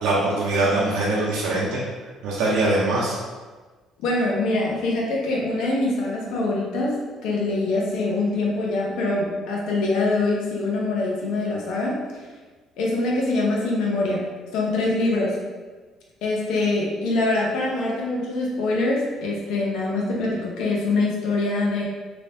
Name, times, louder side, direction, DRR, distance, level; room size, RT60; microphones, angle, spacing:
voice 1, 0.0-1.8 2.2-3.2, right 2 dB, 85° right, -5 dB, 0.6 m, -22 dB
voice 2, 4.0-6.9 7.2-12.2 12.8-14.2 14.5-15.4 16.2-21.8, left 2 dB, 75° left, -3 dB, 0.8 m, -24 dB
3.3 x 2.9 x 2.7 m, 1.4 s
cardioid pair, 140°, 0 cm